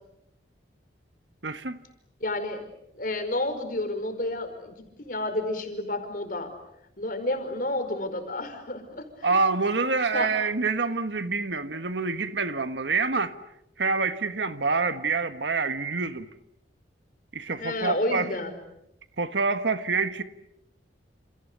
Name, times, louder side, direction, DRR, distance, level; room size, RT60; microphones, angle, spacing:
voice 1, 1.4-1.8 9.2-13.3 13.8-16.3 17.3-18.3 19.2-20.2, right 4 dB, 75° right, 1.6 m, -26 dB
voice 2, 2.2-2.7 2.9-6.5 7.0-9.3 10.1-10.3 17.6-18.6, left 2 dB, 50° left, 5.0 m, -30 dB
29.0 x 29.0 x 6.9 m
head